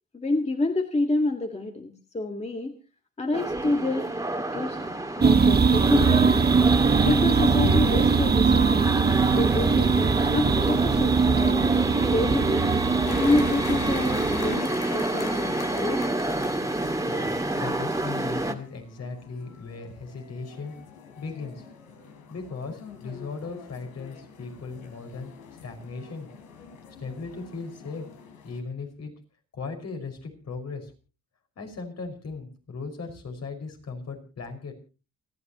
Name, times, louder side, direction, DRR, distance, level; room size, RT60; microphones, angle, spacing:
voice 1, 0.1-2.8 3.2-4.1 4.4-6.5 7.0-9.0 9.3-11.7 12.1-12.7 13.0-16.0, left 2 dB, 20° left, 4 dB, 1.9 m, -28 dB
sound 1, 3.3-18.5, right 2 dB, 10° right, 2.1 m, -29 dB
sound 2, 5.2-14.6, right 5 dB, 35° right, 1.2 m, -21 dB
sound 3, 13.0-28.6, left 6 dB, 80° left, 3.5 m, -44 dB
voice 2, 17.0-20.7 21.2-21.6 22.3-25.3 25.6-26.3 27.0-28.1 28.4-29.1 29.5-30.9 31.6-34.7, left 4 dB, 55° left, 3 dB, 5.7 m, -37 dB
30.0 x 10.5 x 3.0 m, 0.33 s
cardioid pair, 90°, 30 cm